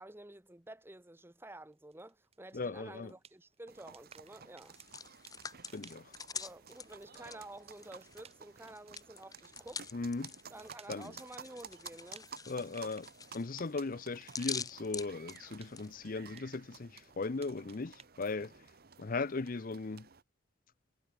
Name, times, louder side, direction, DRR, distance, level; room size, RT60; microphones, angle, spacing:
voice 1, 0.0-4.8 6.3-9.9 10.5-12.3 12.6-12.7, right 1 dB, 10° right, 1.1 m, -51 dB
sound 1, 1.4-13.1 13.6-14.8 15.1-18.1, right 6 dB, 30° right, 6.4 m, -61 dB
voice 2, 2.5-3.1 5.7-6.1 9.9-10.3 10.9-11.1 12.5-13.1 13.3-18.5 19.0-20.1, left 3 dB, 45° left, 0.6 m, -38 dB
sound 2, 3.7-20.2, right 6 dB, 50° right, 1.2 m, -54 dB
Hands, 4.6-8.3 8.6-15.9, left 6 dB, 20° left, 0.9 m, -45 dB
head